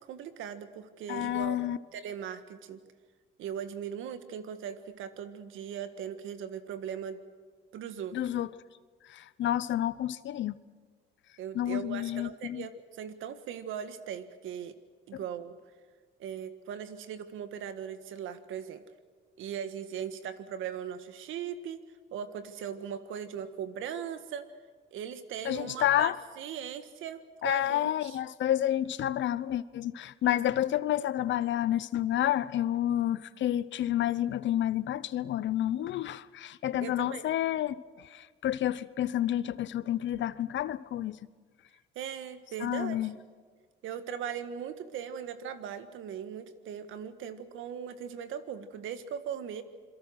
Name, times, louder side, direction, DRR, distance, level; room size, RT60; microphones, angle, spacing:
voice 1, 0.1-1.6 1.9-2.8 3.4-7.2 7.7-8.2 11.4-14.8 15.1-15.6 16.2-18.8 19.4-21.8 22.1-24.5 24.9-28.2 36.8-37.2 41.9-43.1 43.8-49.6, right 8 dB, 85° right, 10 dB, 1.6 m, -39 dB
voice 2, 1.1-1.8 8.1-8.5 9.1-10.5 11.5-12.7 25.4-26.2 27.4-41.2 42.6-43.1, left 12 dB, 70° left, 17 dB, 0.8 m, -29 dB
27.5 x 22.5 x 6.4 m, 1.5 s
cardioid pair, 90°, 20 cm